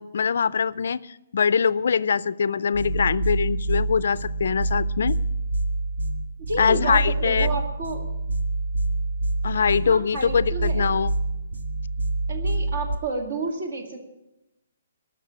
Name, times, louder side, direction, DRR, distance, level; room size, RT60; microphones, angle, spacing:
voice 1, 0.0-5.2 6.6-7.5 9.4-11.1, left 6 dB, 55° left, 18 dB, 0.4 m, -23 dB
sound 1, 2.7-12.9, right 2 dB, 85° right, 1.9 m, -27 dB
voice 2, 6.5-8.1 9.8-10.9 12.3-14.0, right 3 dB, 45° right, 4 dB, 2.2 m, -30 dB
17.5 x 6.4 x 9.8 m, 0.93 s
hypercardioid pair, 180°, 0 cm